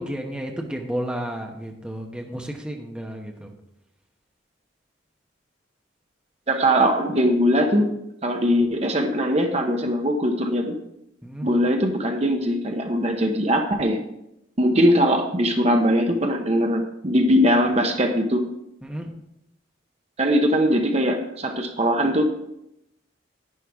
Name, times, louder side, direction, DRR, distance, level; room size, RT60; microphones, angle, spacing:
voice 1, 0.0-3.5 11.2-11.5 18.8-19.1, equal, 5° right, 1 dB, 1.0 m, -32 dB
voice 2, 6.5-7.9 8.2-10.8 11.4-14.0 14.6-18.5 20.2-22.2, equal, 35° right, 4 dB, 0.9 m, -21 dB
11.0 x 9.9 x 3.6 m, 0.81 s
head